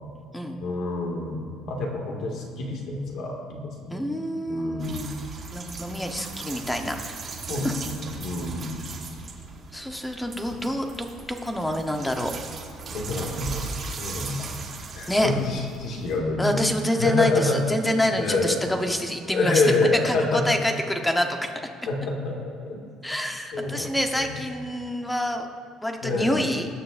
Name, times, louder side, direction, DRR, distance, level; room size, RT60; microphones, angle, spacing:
voice 1, 0.6-4.0 4.5-5.0 7.5-8.8 12.9-14.4 14.9-16.6 17.0-17.6 18.1-18.6 19.3-20.4 21.9-22.4 22.6-22.8 23.5-24.3 26.0-26.4, left 3 dB, 55° left, 0 dB, 1.9 m, -27 dB
voice 2, 3.9-5.1 5.5-7.0 7.6-7.7 9.7-12.3 15.1-15.3 16.4-19.6 20.0-21.5 23.0-25.5 25.8-26.7, equal, 5° left, 4 dB, 0.8 m, -27 dB
sound 1, 4.8-16.2, right 4 dB, 35° right, 1.3 m, -38 dB
21.5 x 9.4 x 2.5 m, 2.5 s
cardioid pair, 155°, 0 cm